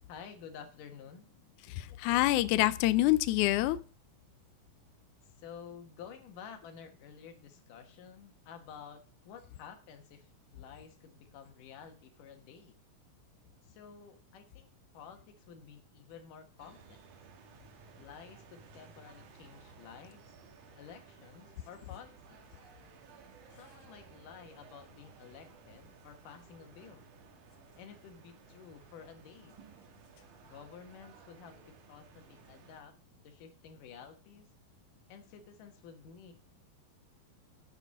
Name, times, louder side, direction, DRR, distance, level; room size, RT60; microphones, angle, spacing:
voice 1, 0.1-1.3 5.2-12.8 13.6-17.0 18.0-20.3 20.8-22.4 23.6-27.1 27.8-29.6 30.4-33.0 33.2-34.5 35.1-36.3, left 7 dB, 70° left, 6 dB, 2.8 m, -51 dB
voice 2, 1.7-3.8, left 16 dB, 90° left, 15 dB, 1.7 m, -26 dB
sound 1, 16.6-32.8, right 6 dB, 65° right, 2.6 m, -57 dB
8.0 x 6.9 x 5.8 m, 0.37 s
omnidirectional pair, 4.1 m